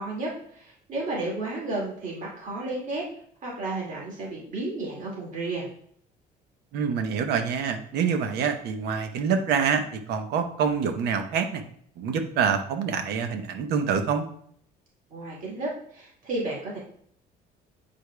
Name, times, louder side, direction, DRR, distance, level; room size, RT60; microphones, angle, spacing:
voice 1, 0.0-3.1 3.4-5.7 15.1-16.8, right 2 dB, 50° right, -4 dB, 2.2 m, -32 dB
voice 2, 6.7-11.6 12.0-14.3, right 6 dB, 80° right, 7 dB, 0.9 m, -26 dB
8.6 x 4.9 x 2.3 m, 0.63 s
cardioid pair, 110°, 17 cm